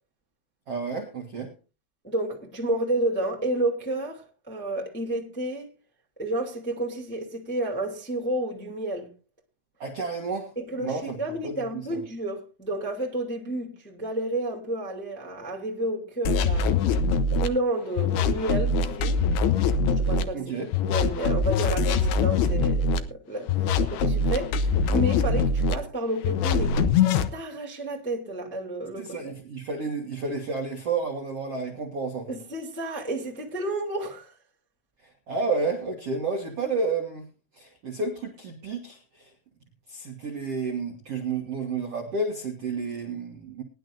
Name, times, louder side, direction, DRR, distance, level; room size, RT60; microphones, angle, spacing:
voice 1, 0.7-1.5 9.8-10.5 10.8-11.2 11.4-12.0 20.3-20.7 29.0-32.4 35.0-37.2 37.5-39.3 39.9-43.6, right 4 dB, 90° right, 1.3 m, -31 dB
voice 2, 2.0-5.7 6.2-9.1 10.5-16.7 17.3-19.2 19.9-20.4 20.8-29.3 32.3-34.3, right 1 dB, 5° left, 0.9 m, -31 dB
sound 1, 16.3-17.5 18.0-20.2 20.7-23.0 23.5-25.8 26.2-27.3, left 4 dB, 75° left, 2.4 m, -23 dB
21.5 x 10.5 x 2.6 m
omnidirectional pair, 5.6 m